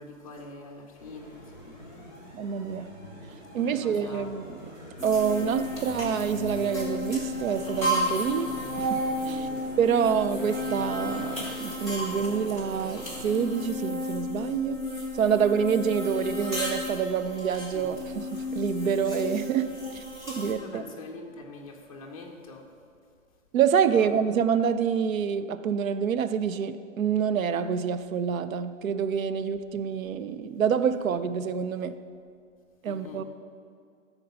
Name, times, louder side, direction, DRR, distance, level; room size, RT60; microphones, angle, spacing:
voice 1, 0.0-2.1 3.5-4.3 9.3-9.6 17.7-17.9 20.6-22.6 23.9-24.1 32.9-33.2, left 3 dB, 25° left, 0 dB, 0.8 m, -44 dB
sound 1, 1.0-13.7, equal, 30° right, 2.5 m, -44 dB
voice 2, 2.3-2.9 3.5-4.6 5.0-9.4 9.8-14.8 15.1-20.0 20.3-20.8 23.5-32.0 32.8-33.2, right 7 dB, 85° right, 13 dB, 0.6 m, -27 dB
sound 2, 5.0-20.5, left 1 dB, 15° right, 0.9 m, -33 dB
12.5 x 4.6 x 5.5 m, 2.3 s
hypercardioid pair, 175°, 40 cm